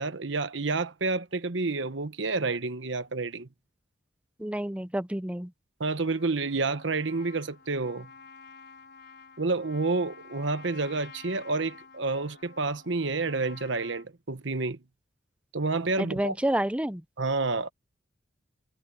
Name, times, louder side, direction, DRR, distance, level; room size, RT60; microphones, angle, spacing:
voice 1, 0.0-3.5 5.8-8.1 9.4-14.8 15.5-16.3 17.2-17.7, right 3 dB, 70° right, 1.2 m, -29 dB
voice 2, 4.4-5.5 16.0-17.0, right 1 dB, 5° right, 0.6 m, -29 dB
Trumpet, 6.0-14.1, left 5 dB, 55° left, 4.0 m, -50 dB
head